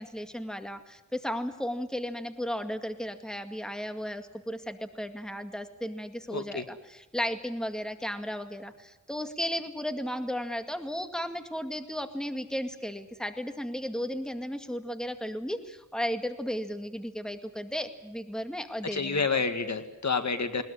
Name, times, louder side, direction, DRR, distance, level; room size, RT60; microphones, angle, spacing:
voice 1, 0.0-19.4, equal, ahead, 7 dB, 2.1 m, -35 dB
voice 2, 6.3-6.6 18.9-20.6, left 4 dB, 60° left, 9 dB, 1.9 m, -29 dB
20.5 x 20.0 x 9.9 m, 0.96 s
wide cardioid pair, 65°, 31 cm